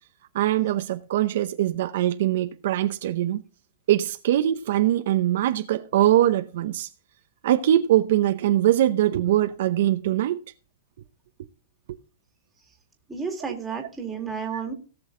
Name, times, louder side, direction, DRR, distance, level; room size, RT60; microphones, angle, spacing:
voice 1, 0.3-3.4 3.9-6.9 7.4-10.4 13.4-13.5, right 13 dB, 60° right, 0.7 m, -22 dB
voice 2, 13.1-14.7, right 6 dB, 10° right, 2.0 m, -31 dB
17.5 x 6.2 x 3.7 m
supercardioid pair, 165°, 0 cm